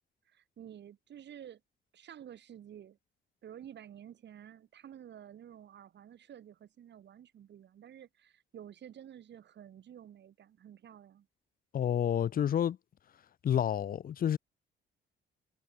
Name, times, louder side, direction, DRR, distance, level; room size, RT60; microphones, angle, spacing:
voice 1, 0.3-1.6 1.9-3.0 3.4-11.3, right 10 dB, 60° right, 2.2 m, -51 dB
voice 2, 11.7-12.8 13.4-14.4, left 9 dB, 45° left, 0.6 m, -29 dB
cardioid pair, 90°, 20 cm